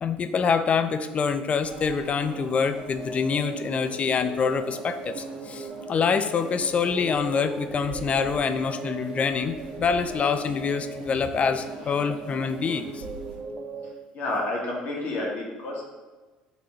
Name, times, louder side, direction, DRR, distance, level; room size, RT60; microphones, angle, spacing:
voice 1, 0.0-13.0, left 5 dB, 30° left, 10 dB, 0.3 m, -26 dB
sound 1, 1.6-13.4, right 1 dB, 85° right, 0.9 m, -44 dB
sound 2, 2.2-13.9, right 3 dB, 25° right, 0.5 m, -38 dB
voice 2, 14.1-15.8, left 2 dB, 50° left, -3 dB, 1.0 m, -29 dB
4.0 x 2.6 x 4.4 m, 1.2 s
figure-of-eight pair, 60°, 4 cm